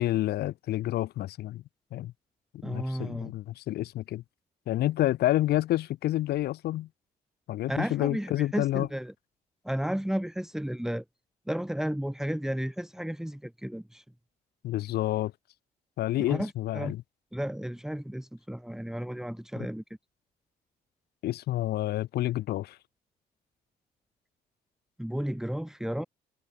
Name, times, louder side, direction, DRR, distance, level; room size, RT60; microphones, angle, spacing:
voice 1, 0.0-1.6 1.9-2.1 2.6-4.2 4.7-6.9 7.5-8.9 14.6-15.3 16.0-17.0 21.2-22.8, left 14 dB, 80° left, 1.5 m, -29 dB
voice 2, 2.6-3.3 7.7-9.1 9.6-11.0 11.5-14.0 16.2-16.9 17.3-19.8 25.0-26.1, equal, 5° right, 5.1 m, -33 dB
cardioid pair, 100°, 16 cm